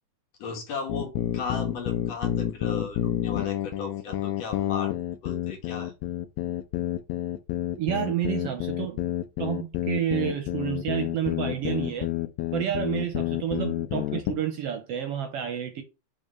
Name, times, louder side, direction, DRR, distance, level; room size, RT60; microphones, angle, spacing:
voice 1, 0.4-4.9 5.2-5.9, left 5 dB, 65° left, 2.6 m, -36 dB
sound 1, 0.9-14.4, left 13 dB, 85° left, 2.0 m, -29 dB
voice 2, 7.8-9.0 9.4-12.1 12.5-15.8, right 10 dB, 70° right, 1.6 m, -29 dB
6.1 x 3.6 x 5.3 m
omnidirectional pair, 3.3 m